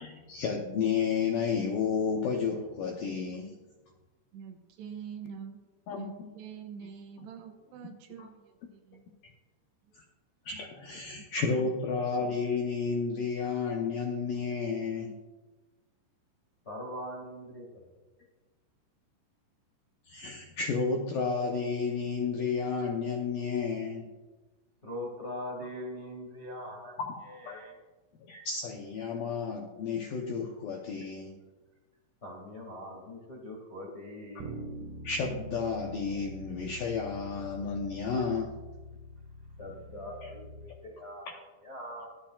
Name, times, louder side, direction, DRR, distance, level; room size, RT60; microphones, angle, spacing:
voice 1, 0.0-3.6 5.9-6.3 8.2-8.3 9.9-10.0 10.5-15.1 20.1-24.1 27.0-27.1 27.5-27.6 28.3-31.3 35.0-38.5 40.2-40.3, left 5 dB, 80° left, 0 dB, 2.0 m, -32 dB
voice 2, 4.3-5.6 6.0-9.0 9.9-10.0 11.2-11.3 11.6-11.7, right 7 dB, 75° right, 4 dB, 3.0 m, -45 dB
voice 3, 16.6-17.8 24.8-26.9 27.3-27.7 32.2-34.6 39.6-42.1, left 1 dB, 45° left, -2 dB, 0.8 m, -42 dB
Bass guitar, 34.4-40.6, equal, 60° right, 2.6 m, -44 dB
24.5 x 8.9 x 2.4 m, 1.2 s
omnidirectional pair, 5.2 m